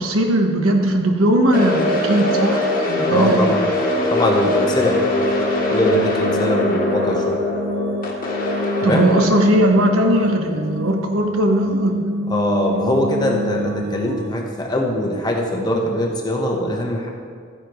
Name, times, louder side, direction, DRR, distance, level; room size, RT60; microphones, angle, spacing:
voice 1, 0.0-2.6 2.9-3.6 8.8-12.1, right 1 dB, 80° right, 3 dB, 1.2 m, -18 dB
sound 1, 1.5-11.6, left 1 dB, 40° left, 1.6 m, -22 dB
voice 2, 3.1-3.7 4.1-5.0 5.7-7.4 8.8-9.1 12.3-17.1, left 1 dB, 20° left, 0 dB, 1.1 m, -22 dB
sound 2, 4.8-14.5, equal, 55° right, 0.6 m, -29 dB
14.0 x 9.9 x 3.1 m, 2.1 s
head